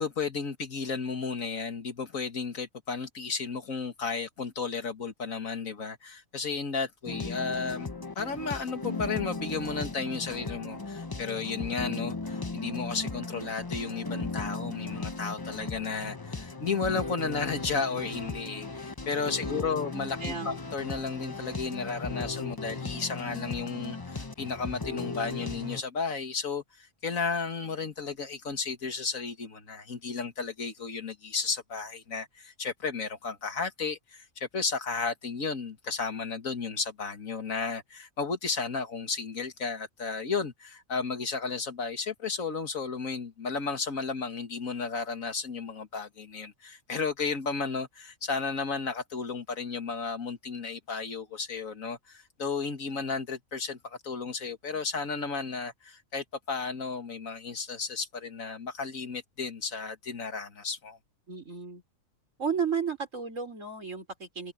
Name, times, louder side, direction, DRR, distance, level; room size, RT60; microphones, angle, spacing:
voice 1, 0.0-61.0, left 4 dB, 80° left, 2.2 m, -33 dB
sound 1, 7.1-25.8, left 3 dB, 20° left, 0.8 m, -37 dB
voice 2, 19.4-19.9 20.2-20.6 61.3-61.8 62.4-64.5, right 6 dB, 65° right, 4.6 m, -33 dB
omnidirectional pair, 1.4 m